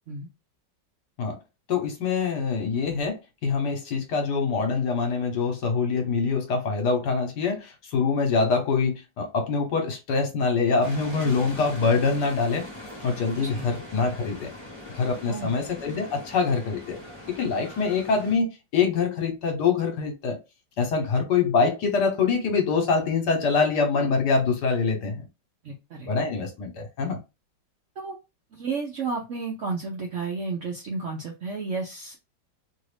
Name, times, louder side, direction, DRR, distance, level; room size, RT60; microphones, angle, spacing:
voice 1, 1.7-12.6 13.0-14.5 14.9-17.0 17.3-20.4 20.8-25.2 26.1-27.2, left 4 dB, 70° left, 1.4 m, -25 dB
sound 1, 10.8-18.3, left 1 dB, 20° left, 0.9 m, -41 dB
voice 2, 25.6-26.1 27.0-27.2 28.0-28.1 28.5-32.2, right 4 dB, 65° right, 0.7 m, -32 dB
3.1 x 2.5 x 3.3 m
omnidirectional pair, 1.9 m